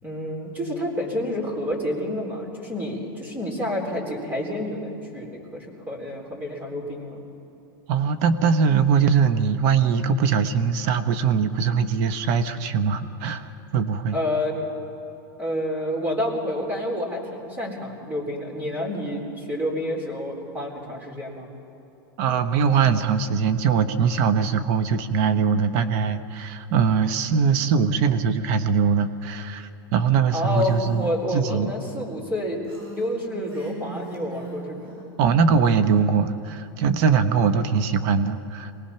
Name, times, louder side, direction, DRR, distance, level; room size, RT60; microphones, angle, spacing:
voice 1, 0.0-7.2 14.1-14.7 15.4-21.5 30.3-32.6 32.9-35.1, left 1 dB, 15° right, -1 dB, 4.1 m, -29 dB
voice 2, 7.9-13.5 13.7-14.2 22.2-31.7 35.2-38.7, right 6 dB, 55° right, 10 dB, 1.1 m, -21 dB
Female speech woman speaking, 30.5-31.2 32.6-34.9, right 2 dB, 90° right, 6.7 m, -40 dB
24.5 x 18.5 x 5.8 m, 2.8 s
supercardioid pair, 130°, 12 cm